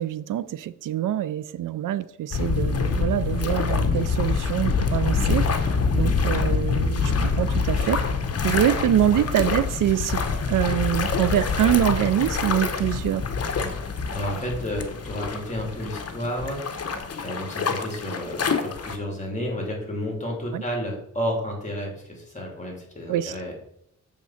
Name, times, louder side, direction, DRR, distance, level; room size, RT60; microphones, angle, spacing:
voice 1, 0.0-5.4 5.9-8.0 8.4-10.2 10.5-13.2 20.5-20.6 23.1-23.3, right 12 dB, 80° right, 15 dB, 0.5 m, -24 dB
sound 1, 2.3-19.0, left 5 dB, 50° left, 0.9 m, -25 dB
voice 2, 13.7-23.6, equal, 20° left, 0 dB, 2.6 m, -32 dB
7.1 x 3.7 x 5.7 m, 0.73 s
cardioid pair, 80°, 32 cm